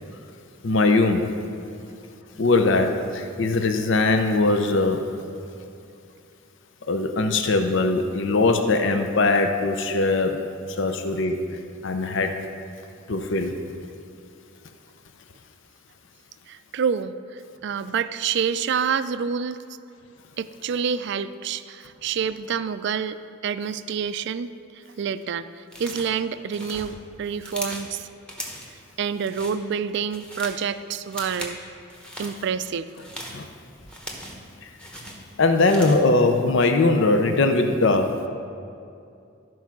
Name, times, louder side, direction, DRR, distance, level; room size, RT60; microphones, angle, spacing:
voice 1, 0.6-1.3 2.4-5.0 6.9-10.4 10.8-11.4 11.8-12.3 13.1-13.5 33.3-33.4 35.4-38.1, left 3 dB, 65° left, 5 dB, 0.7 m, -21 dB
voice 2, 16.5-19.6 20.4-24.5 25.0-28.1 29.0-31.6 32.2-32.9, right 7 dB, 60° right, 13 dB, 0.4 m, -28 dB
sound 1, 25.7-26.2 26.5-27.9 28.3-28.8 29.1-29.6 29.9-30.6 31.0-31.6 31.9-32.4 32.9-34.5 34.8-36.1, equal, 5° left, 1.2 m, -38 dB
14.0 x 4.6 x 6.0 m, 2.5 s
head